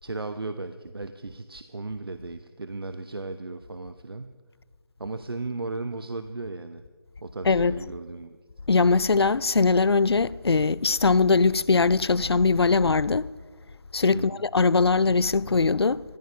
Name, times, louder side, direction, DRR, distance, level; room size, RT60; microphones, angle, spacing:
voice 1, 0.0-4.3 5.0-6.8 7.2-8.4 14.1-14.4, right 3 dB, 70° right, 0.8 m, -35 dB
voice 2, 8.7-13.3 13.9-16.0, left 4 dB, 85° left, 0.5 m, -21 dB
15.5 x 14.5 x 5.5 m
figure-of-eight pair, 175°, 13 cm